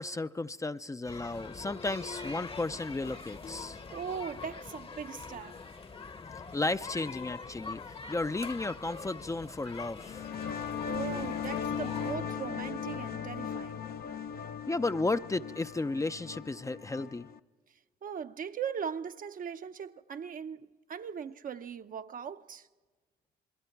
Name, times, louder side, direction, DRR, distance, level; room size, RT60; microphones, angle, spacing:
voice 1, 0.0-3.8 6.5-10.2 14.7-17.3, left 2 dB, 20° left, 0.5 m, -34 dB
sound 1, 1.1-12.1, left 4 dB, 35° left, 1.0 m, -44 dB
voice 2, 3.9-5.6 10.9-13.8 18.0-22.7, right 7 dB, 50° right, 0.8 m, -39 dB
sound 2, 10.0-17.4, left 7 dB, 60° left, 0.7 m, -38 dB
28.0 x 21.5 x 4.6 m
supercardioid pair, 70°, 17 cm